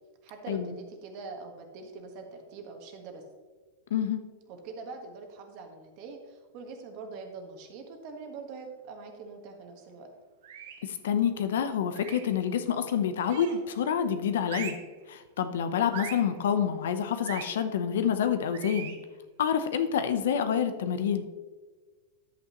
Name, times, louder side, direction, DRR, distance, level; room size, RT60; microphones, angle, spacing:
voice 1, 0.2-3.2 4.5-10.1, right 4 dB, 40° right, 4 dB, 1.4 m, -43 dB
voice 2, 3.9-4.2 10.9-14.8 15.1-19.0 19.4-21.3, left 8 dB, 85° left, 9 dB, 0.8 m, -28 dB
sound 1, 10.4-10.9 11.9-12.4 13.2-13.7 14.4-14.9 15.9-16.3 17.2-17.5 18.5-19.0, right 8 dB, 65° right, 1.2 m, -41 dB
10.0 x 8.3 x 3.1 m, 1.4 s
supercardioid pair, 160°, 0 cm